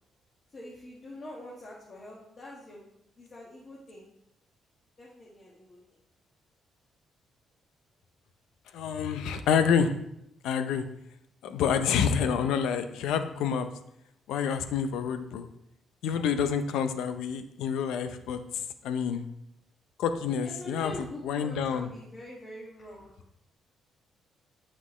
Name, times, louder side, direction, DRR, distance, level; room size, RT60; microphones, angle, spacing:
voice 1, 0.5-4.1 5.0-5.8 20.3-23.1, left 1 dB, 40° left, -5 dB, 1.7 m, -44 dB
voice 2, 8.7-9.9 10.4-10.8 11.4-13.7 14.3-15.5 16.0-18.4 18.8-19.3 20.0-20.9 21.2-21.9, left 7 dB, 85° left, 9 dB, 0.5 m, -28 dB
7.5 x 6.0 x 3.1 m, 0.77 s
cardioid pair, 90°, 0 cm